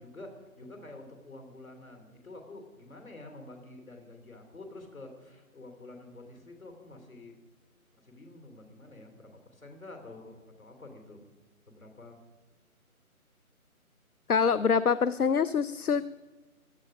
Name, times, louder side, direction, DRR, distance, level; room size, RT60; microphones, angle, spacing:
voice 1, 0.0-7.3 8.0-11.3 11.7-12.2, left 2 dB, 70° left, 4 dB, 3.3 m, -48 dB
voice 2, 14.3-16.0, left 6 dB, 85° left, 16 dB, 0.6 m, -25 dB
16.0 x 12.0 x 5.1 m, 1.2 s
figure-of-eight pair, 155°, 43 cm